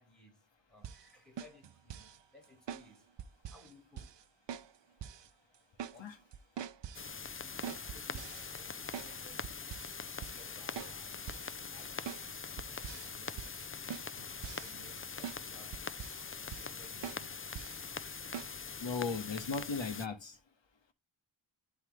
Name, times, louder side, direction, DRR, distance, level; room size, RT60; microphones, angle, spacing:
voice 1, 0.0-3.1 3.5-4.2 5.9-6.0 7.4-8.8 9.0-9.5 10.3-11.2 11.7-13.5 14.5-16.2 16.6-17.9, equal, ahead, 5.4 m, -60 dB
sound 1, 0.8-1.1 1.4-2.2 2.7-2.9 3.2-3.7 4.0-4.2 4.5-4.7 5.0-5.3 5.5-6.0 6.3-7.1 7.6-9.2 9.4-9.9 10.2-10.5 10.8-11.0 11.3-11.5 12.1-12.3 12.6-13.1 13.4-13.6 13.9-15.0 15.2-15.4 15.7-16.3 16.5-16.8 17.0-17.2 17.6-17.8 18.3-18.5, right 8 dB, 60° right, 0.7 m, -44 dB
sound 2, 6.9-20.1, left 5 dB, 25° left, 0.5 m, -43 dB
voice 2, 18.8-20.4, left 4 dB, 60° left, 1.9 m, -36 dB
12.0 x 4.7 x 3.3 m
wide cardioid pair, 70°, 49 cm